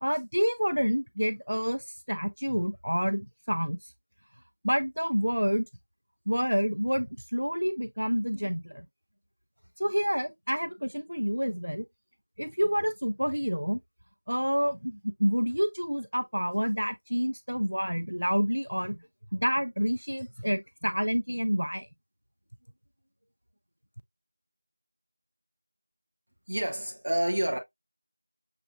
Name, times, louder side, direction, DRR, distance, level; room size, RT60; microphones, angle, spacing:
voice 1, 0.0-3.8 4.6-5.7 6.3-8.9 9.8-11.8 12.4-13.8 14.3-19.0 19.3-21.9, equal, 70° right, 0.5 m, -28 dB
voice 2, 26.5-27.6, right 1 dB, 20° right, 0.7 m, -28 dB
6.6 x 2.6 x 2.3 m
figure-of-eight pair, 175°, 0 cm